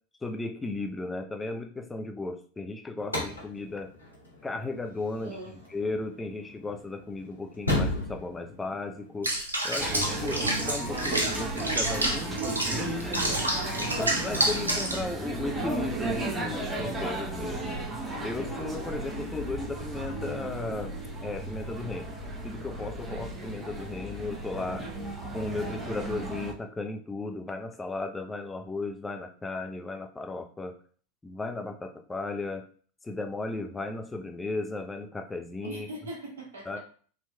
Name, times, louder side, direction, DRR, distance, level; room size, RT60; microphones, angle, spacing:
voice 1, 0.2-3.9 4.4-5.4 5.7-9.3 9.6-12.4 12.7-13.4 14.0-17.8 18.2-22.1 22.4-24.8 25.3-30.7 31.2-32.6 33.0-35.9 36.7-36.8, left 3 dB, 15° left, 3 dB, 0.5 m, -35 dB
sound 1, 3.0-9.4, left 1 dB, 90° left, 1.0 m, -35 dB
voice 2, 5.2-5.5 24.5-25.1 35.6-36.8, right 1 dB, 70° right, -2 dB, 1.4 m, -42 dB
Water / Bathtub (filling or washing), 9.2-15.0, right 1 dB, 85° right, 0.6 m, -29 dB
sound 2, 9.8-26.5, right 2 dB, 15° right, 0.9 m, -34 dB
4.5 x 2.8 x 2.2 m, 0.44 s
figure-of-eight pair, 85°, 0 cm